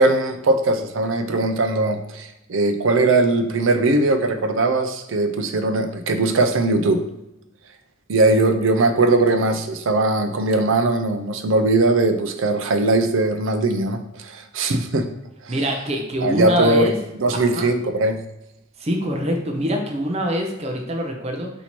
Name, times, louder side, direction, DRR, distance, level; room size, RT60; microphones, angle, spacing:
voice 1, 0.0-7.0 8.1-15.1 15.4-15.5 16.2-16.9 17.2-18.2, right 2 dB, 70° right, 7 dB, 0.5 m, -20 dB
voice 2, 15.5-16.9 17.5-17.7 18.8-21.5, equal, 30° right, 2 dB, 0.6 m, -24 dB
4.3 x 2.8 x 4.3 m, 0.91 s
head